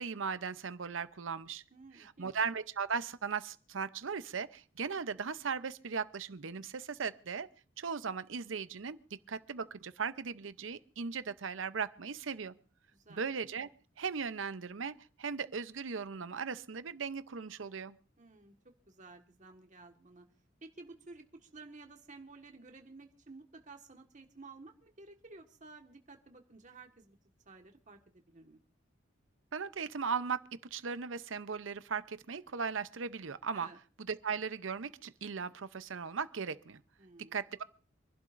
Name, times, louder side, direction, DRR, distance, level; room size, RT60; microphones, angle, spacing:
voice 1, 0.0-1.6 2.0-7.5 7.8-9.0 9.3-12.5 13.1-13.7 14.0-17.9 29.5-30.4 30.7-33.7 34.1-36.8 37.3-37.6, right 5 dB, 80° right, 0.7 m, -37 dB
voice 2, 1.7-2.3 12.9-13.2 18.2-20.3 20.6-27.2 27.4-28.6 33.5-33.8 37.0-37.4, right 3 dB, 40° right, 1.6 m, -53 dB
27.0 x 11.5 x 2.6 m
head